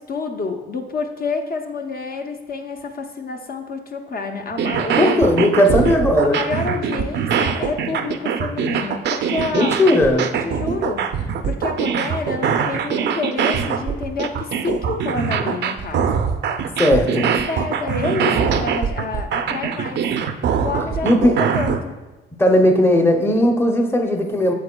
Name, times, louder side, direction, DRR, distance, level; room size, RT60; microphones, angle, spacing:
voice 1, 0.0-5.3 6.2-9.9 10.4-11.0 11.4-16.2 17.5-20.0 20.6-21.9, left 4 dB, 50° left, 3 dB, 0.7 m, -28 dB
sound 1, 4.5-21.8, right 7 dB, 60° right, 0.5 m, -22 dB
voice 2, 5.0-6.4 9.5-10.3 16.8-17.4 21.0-21.4 22.4-24.5, left 1 dB, 10° left, 4 dB, 0.7 m, -17 dB
8.2 x 6.7 x 2.2 m, 1.2 s
cardioid pair, 90°, 20 cm